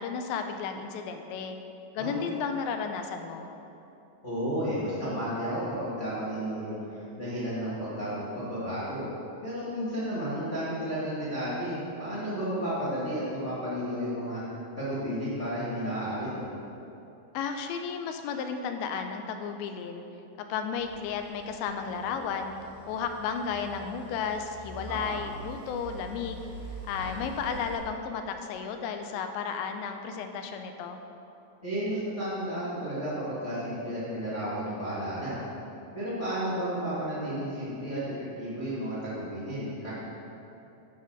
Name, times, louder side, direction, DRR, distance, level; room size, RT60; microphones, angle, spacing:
voice 1, 0.0-1.6 2.0-3.5 17.3-20.0 20.4-22.5 22.9-26.5 26.9-31.0, left 6 dB, 90° left, 6 dB, 2.8 m, -33 dB
voice 2, 2.0-2.3 4.2-9.0 9.4-14.4 14.8-16.4 24.9-25.2 27.0-27.2 31.6-35.4 35.9-39.9, equal, 50° left, -12 dB, 0.8 m, -32 dB
sound 1, 20.8-27.8, right 1 dB, 70° right, 2.1 m, -45 dB
9.4 x 4.1 x 6.2 m, 2.9 s
omnidirectional pair, 5.0 m